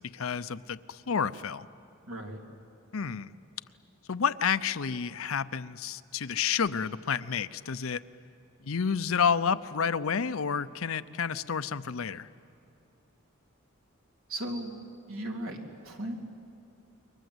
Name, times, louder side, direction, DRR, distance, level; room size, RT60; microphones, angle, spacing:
voice 1, 0.0-1.7 2.9-3.3 4.1-8.0 8.6-12.3, left 6 dB, 70° left, 14 dB, 0.7 m, -30 dB
voice 2, 2.1-2.4 14.3-14.7 15.1-16.2, right 1 dB, 80° right, 1 dB, 3.3 m, -36 dB
29.5 x 23.5 x 8.0 m, 2.8 s
head